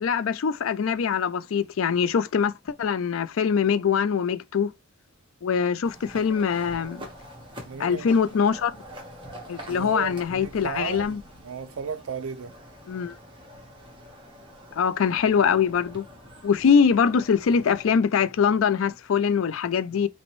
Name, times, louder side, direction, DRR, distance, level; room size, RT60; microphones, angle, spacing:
voice 1, 0.0-2.5 2.8-4.7 5.4-7.0 7.8-8.8 9.5-11.2 12.9-13.1 14.7-16.0 16.4-20.1, left 6 dB, 70° left, 0.4 m, -23 dB
sound 1, 5.8-17.9, equal, 25° right, 1.3 m, -45 dB
voice 2, 7.7-8.1 9.7-11.2 11.4-12.6, right 6 dB, 80° right, 0.4 m, -34 dB
5.2 x 2.1 x 3.0 m
head